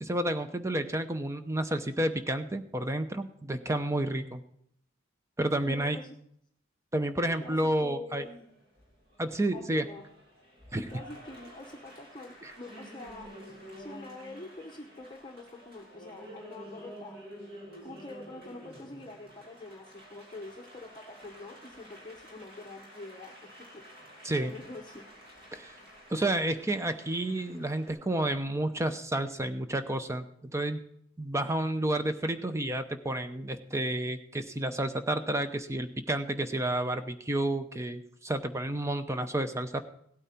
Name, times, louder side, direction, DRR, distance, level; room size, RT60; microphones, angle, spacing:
voice 1, 0.0-4.4 5.4-6.0 6.9-8.3 9.2-9.8 10.7-10.9 12.4-12.5 24.2-24.5 25.5-25.7 26.1-30.8 31.2-39.8, right 1 dB, 15° right, 9 dB, 0.7 m, -30 dB
voice 2, 5.7-6.2 7.4-8.5 9.5-10.1 10.9-13.3 13.8-17.2 17.8-23.3 23.7-23.8 24.4-25.0, left 2 dB, 20° left, 3 dB, 0.9 m, -45 dB
Applause, 8.1-27.9, equal, 50° right, 2.7 m, -50 dB
16.5 x 8.8 x 4.3 m, 0.69 s
head